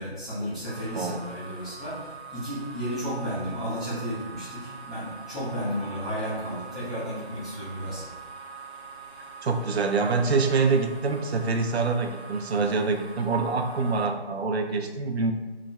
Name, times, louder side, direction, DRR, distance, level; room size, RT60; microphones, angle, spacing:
voice 1, 0.0-8.0, equal, ahead, -15 dB, 0.7 m, -33 dB
sound 1, 0.7-14.0, right 5 dB, 35° left, 0.7 m, -43 dB
voice 2, 9.4-15.3, right 4 dB, 80° right, 5 dB, 0.5 m, -25 dB
3.1 x 2.3 x 3.2 m, 1.2 s
figure-of-eight pair, 180°, 32 cm